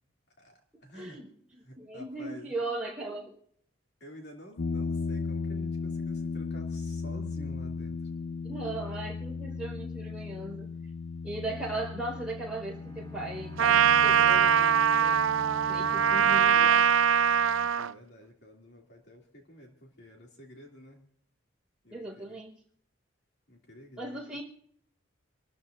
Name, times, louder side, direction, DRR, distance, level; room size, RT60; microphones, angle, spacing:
voice 1, 0.4-1.2 1.6-2.5 4.0-8.0 17.8-21.0 21.8-22.4 23.5-24.2, equal, 55° left, 0 dB, 2.5 m, -49 dB
voice 2, 0.9-1.3 1.8-3.4 8.4-10.7 11.2-15.2 15.7-16.9 21.9-22.5 24.0-24.4, right 2 dB, 5° right, -3 dB, 4.5 m, -38 dB
sound 1, 4.6-17.7, left 4 dB, 80° left, 0.7 m, -37 dB
Bowed string instrument, 12.5-17.2, right 1 dB, 20° left, 4.4 m, -43 dB
Trumpet, 13.6-17.9, right 8 dB, 80° right, 0.4 m, -22 dB
28.0 x 13.0 x 2.5 m, 0.64 s
head